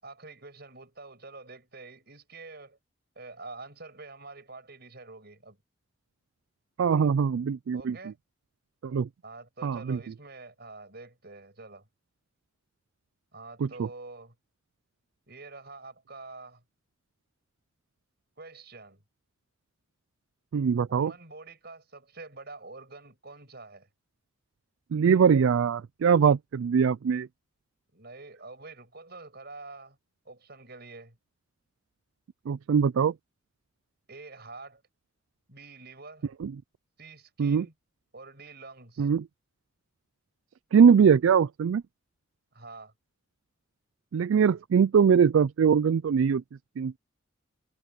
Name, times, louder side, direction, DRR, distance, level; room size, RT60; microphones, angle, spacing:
voice 1, 0.0-2.8 3.1-5.6 7.7-8.2 9.2-11.9 13.3-14.3 15.3-16.6 18.4-19.0 20.9-23.9 27.9-30.0 30.2-31.2 34.1-34.8 35.5-36.3 37.0-37.7 38.1-39.1 42.5-42.9, right 3 dB, 50° right, 6.8 m, -46 dB
voice 2, 6.8-8.0 8.8-9.1 9.6-10.0 13.6-13.7 20.5-21.1 24.9-27.3 32.5-33.1 36.4-36.5 37.4-37.7 39.0-39.2 40.7-41.8 44.1-46.4 46.8-46.9, right 6 dB, 75° right, 0.4 m, -22 dB
head